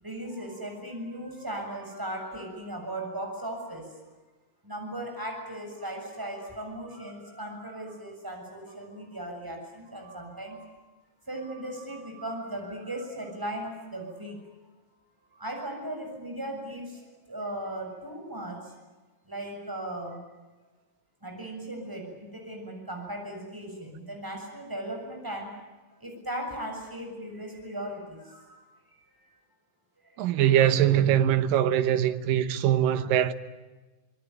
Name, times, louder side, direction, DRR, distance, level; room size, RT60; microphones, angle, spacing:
voice 1, 0.0-4.0 4.6-10.7 11.3-14.5 15.3-18.7 19.3-20.2 21.2-25.5 26.0-28.6 28.9-29.4 30.0-30.2 33.0-33.2, right 1 dB, 5° right, 7.0 m, -37 dB
voice 2, 30.2-33.3, right 10 dB, 80° right, 2.8 m, -22 dB
26.0 x 22.0 x 9.3 m
omnidirectional pair, 3.9 m